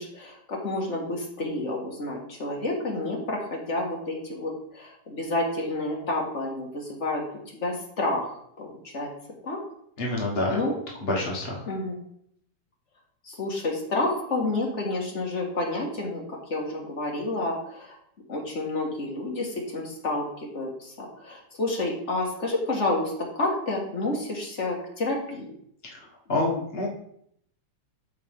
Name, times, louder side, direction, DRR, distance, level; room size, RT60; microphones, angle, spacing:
voice 1, 0.0-7.2 7.5-9.1 9.4-9.6 10.5-10.7 11.6-12.0 13.3-16.2 16.5-17.9 18.3-20.2 20.5-25.5, left 2 dB, 30° left, -1 dB, 1.3 m, -29 dB
voice 2, 10.0-10.6 11.0-11.5 26.3-26.9, left 2 dB, 55° left, -2 dB, 0.6 m, -26 dB
13.5 x 4.7 x 3.7 m, 0.70 s
omnidirectional pair, 3.5 m